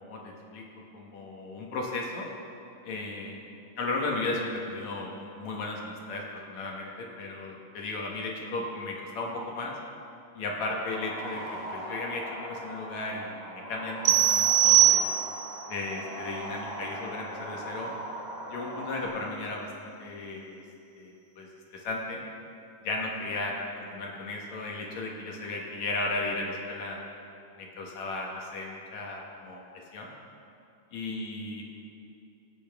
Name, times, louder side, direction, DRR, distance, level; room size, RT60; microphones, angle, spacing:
voice 1, 0.9-2.3 2.8-3.4 3.8-9.8 10.4-11.4 11.7-15.1 15.7-17.9 18.5-20.6 21.0-22.2 22.8-23.5 23.9-27.0 27.6-29.6 29.9-30.1 30.9-31.6, left 2 dB, 65° left, -1 dB, 2.6 m, -35 dB
sound 1, 10.8-19.1, equal, 30° left, 2.9 m, -40 dB
sound 2, 14.1-15.6, right 12 dB, 85° right, 2.4 m, -21 dB
23.5 x 8.7 x 3.6 m, 2.7 s
omnidirectional pair, 3.7 m